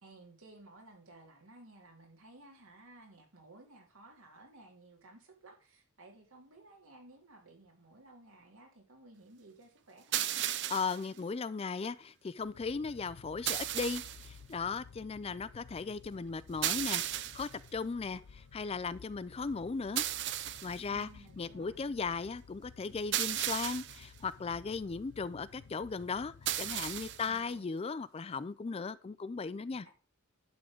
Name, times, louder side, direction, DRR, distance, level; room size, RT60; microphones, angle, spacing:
voice 1, 0.0-10.5 20.9-21.8 27.2-27.7 29.8-29.9, right 2 dB, 75° right, 2.9 m, -56 dB
sound 1, 10.1-11.0 13.5-14.3 16.6-17.5 20.0-20.8 23.1-24.0 26.5-27.3, right 12 dB, 55° right, 0.5 m, -34 dB
voice 2, 10.7-17.0 17.3-20.0 20.6-21.1 21.4-29.9, left 4 dB, 25° left, 0.3 m, -37 dB
sound 2, 12.4-27.7, left 5 dB, 80° left, 0.5 m, -55 dB
11.5 x 3.8 x 6.4 m
head